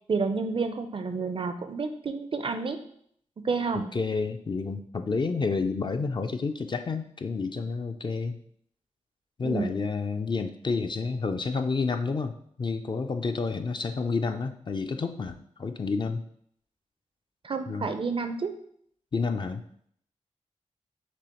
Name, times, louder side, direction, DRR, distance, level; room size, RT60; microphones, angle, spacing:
voice 1, 0.1-2.8 3.4-3.9 9.4-9.7 17.4-18.5, right 4 dB, 45° right, 8 dB, 0.4 m, -30 dB
voice 2, 3.7-8.4 9.4-16.2 17.7-17.9 19.1-19.6, left 4 dB, 40° left, 7 dB, 0.4 m, -30 dB
5.9 x 2.0 x 2.9 m, 0.65 s
cardioid pair, 50°, 12 cm